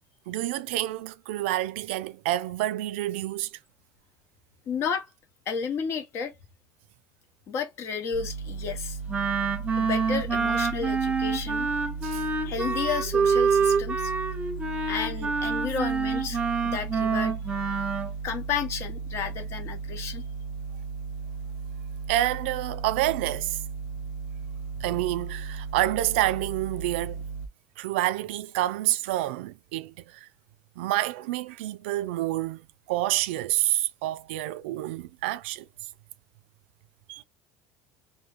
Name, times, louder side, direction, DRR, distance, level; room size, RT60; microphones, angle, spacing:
voice 1, 0.3-3.5 12.0-12.3 22.1-23.6 24.8-27.2 27.8-30.3 30.8-35.7 37.1-37.2, right 15 dB, 90° right, 0.3 m, -28 dB
voice 2, 4.7-5.1 5.5-6.3 7.5-9.0 9.8-11.7 12.4-14.1 14.9-17.4 18.2-20.2, left 6 dB, 50° left, 0.9 m, -32 dB
sound 1, 8.1-27.5, right 5 dB, 70° left, 0.6 m, -36 dB
Wind instrument woodwind instrument, 9.1-18.1, right 5 dB, 20° right, 0.8 m, -26 dB
2.6 x 2.2 x 3.3 m
supercardioid pair, 115°, 6 cm